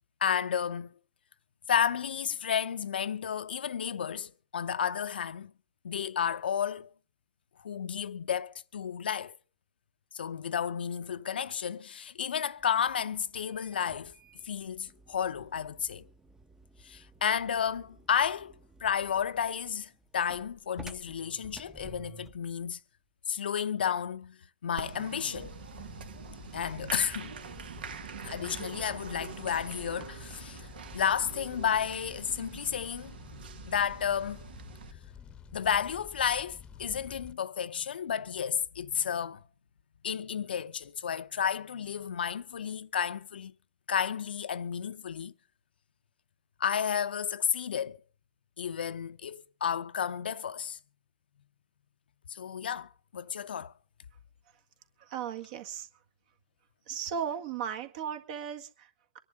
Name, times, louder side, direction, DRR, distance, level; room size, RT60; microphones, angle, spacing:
voice 1, 0.2-0.9 1.7-5.5 5.8-6.9 7.6-9.3 10.1-14.1 14.4-16.1 16.8-18.5 18.8-22.8 23.3-25.5 26.5-27.3 28.2-30.7 30.9-33.2 33.7-34.4 35.5-39.4 40.0-43.5 43.9-45.3 46.6-48.0 48.6-50.8 52.3-53.7, left 8 dB, 85° left, 0.6 m, -32 dB
closing tailgate, 12.6-22.5, right 3 dB, 10° right, 0.7 m, -54 dB
Applause, 24.8-34.9, right 7 dB, 75° right, 1.4 m, -45 dB
Fire, 25.3-37.3, left 8 dB, 20° left, 0.9 m, -50 dB
voice 2, 55.0-55.9 56.9-59.2, right 8 dB, 55° right, 1.7 m, -36 dB
25.0 x 10.5 x 3.5 m
hypercardioid pair, 130°, 5 cm